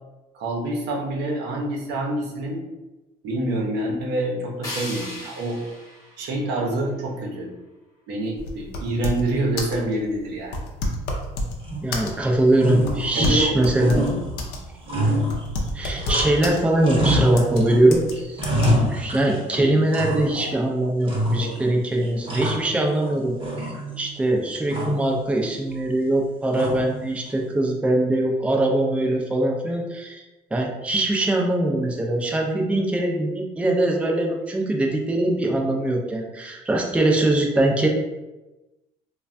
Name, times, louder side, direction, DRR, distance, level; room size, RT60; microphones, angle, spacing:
voice 1, 0.3-2.6 3.2-5.6 6.2-7.5 8.1-10.5 13.1-13.6 15.0-15.1 19.6-19.8, right 1 dB, 85° right, -1 dB, 0.7 m, -26 dB
sound 1, 4.6-7.6, left 1 dB, 20° left, 0.9 m, -38 dB
sound 2, 8.4-9.3 9.6-9.8 10.5-11.6 11.9-12.4 12.9-14.6 14.9-15.0 15.3-16.6 17.3-17.6 17.9-18.1 18.4-18.7, left 1 dB, 75° left, 0.5 m, -28 dB
sound 3, 11.6-12.2 12.5-13.5 13.8-16.5 16.8-17.8 18.1-19.5 19.9-20.6 21.0-21.7 22.0-23.1 23.4-24.1 24.7-25.1 26.5-27.0, right 1 dB, 30° right, 0.7 m, -27 dB
voice 2, 11.8-14.1 15.7-23.4 24.0-30.2 30.5-37.9, right 1 dB, 5° right, 0 dB, 0.4 m, -22 dB
3.1 x 2.2 x 2.5 m, 1.1 s
cardioid pair, 110°, 17 cm